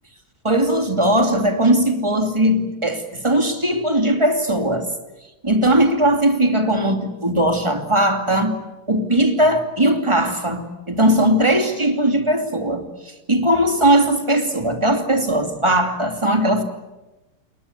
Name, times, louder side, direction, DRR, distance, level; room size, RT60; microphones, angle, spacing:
voice 1, 0.4-4.9 5.4-8.5 8.9-12.9 13.3-16.6, right 1 dB, 15° right, 2.5 m, -19 dB
29.0 x 22.0 x 8.4 m
omnidirectional pair, 2.3 m